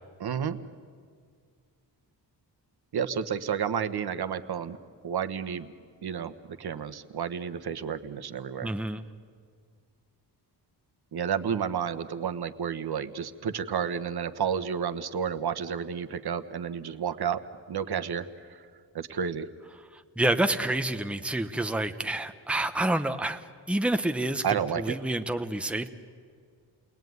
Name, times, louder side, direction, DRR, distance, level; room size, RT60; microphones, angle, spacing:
voice 1, 0.2-0.6 2.9-4.8 5.0-5.7 6.0-6.3 6.6-8.7 11.1-17.4 17.7-18.7 18.9-19.5 24.4-25.0, right 7 dB, 65° right, 10 dB, 1.2 m, -31 dB
voice 2, 8.6-9.0 20.2-23.4 23.7-24.4 24.8-25.9, right 1 dB, 5° right, 7 dB, 1.0 m, -28 dB
30.0 x 21.0 x 9.5 m, 2.1 s
wide cardioid pair, 130°, 41 cm